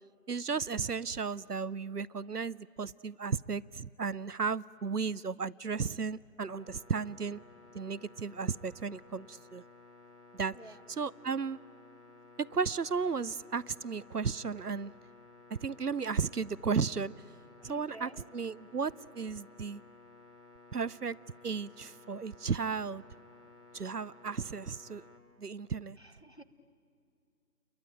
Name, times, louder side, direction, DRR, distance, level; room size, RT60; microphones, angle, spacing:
voice 1, 0.3-7.4 7.7-9.6 10.3-10.6 10.9-11.6 12.4-14.9 15.5-17.1 17.6-19.8 20.7-21.2 21.4-23.0 23.7-25.0 25.4-26.0, right 5 dB, 70° right, 20 dB, 0.6 m, -34 dB
sound 1, 6.5-25.2, left 3 dB, 70° left, 4.5 m, -56 dB
voice 2, 17.6-18.3 26.0-26.4, right 1 dB, 40° left, 9 dB, 1.2 m, -51 dB
30.0 x 22.5 x 8.9 m, 2.5 s
figure-of-eight pair, 175°, 49 cm